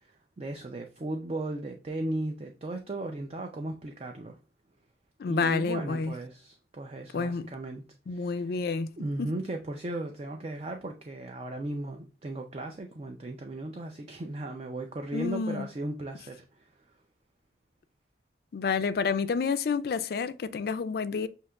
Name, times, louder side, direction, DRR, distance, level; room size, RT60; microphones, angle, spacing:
voice 1, 0.0-4.4 5.3-7.8 8.1-8.6 9.0-16.7, right 2 dB, 35° right, 0.4 m, -36 dB
voice 2, 5.2-6.1 7.1-7.5 8.1-8.9 9.2-9.3 15.1-15.7 18.5-21.3, left 5 dB, 55° left, 0.3 m, -29 dB
6.3 x 2.8 x 2.2 m
head